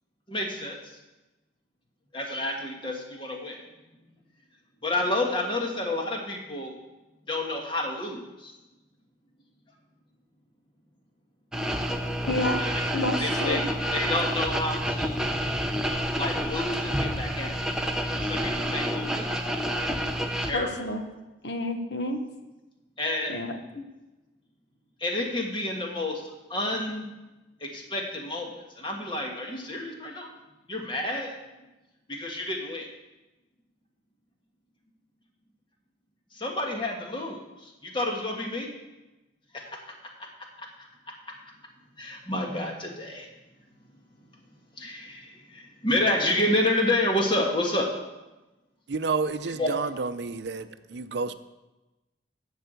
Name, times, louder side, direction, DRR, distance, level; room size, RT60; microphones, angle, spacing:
voice 1, 0.3-0.8 2.1-3.6 4.8-6.7 7.3-8.5 12.6-12.7 13.2-15.3 16.1-17.5 18.1-19.3 20.4-20.7 23.0-23.4 25.0-26.2 26.5-27.1 27.6-30.3 30.7-31.3 32.1-32.9 36.4-37.4 37.8-38.7 42.0-43.3 44.8-47.9 49.6-49.7, left 1 dB, 25° left, 1 dB, 1.6 m, -29 dB
sound 1, 11.5-20.5, equal, 5° right, 0.7 m, -28 dB
voice 2, 12.3-12.6 12.9-13.6 20.5-21.1 21.4-22.2 23.3-23.8, left 1 dB, 75° left, 6 dB, 1.2 m, -30 dB
voice 3, 48.9-51.3, right 4 dB, 75° right, 12 dB, 0.5 m, -30 dB
11.0 x 4.8 x 8.1 m, 1.1 s
head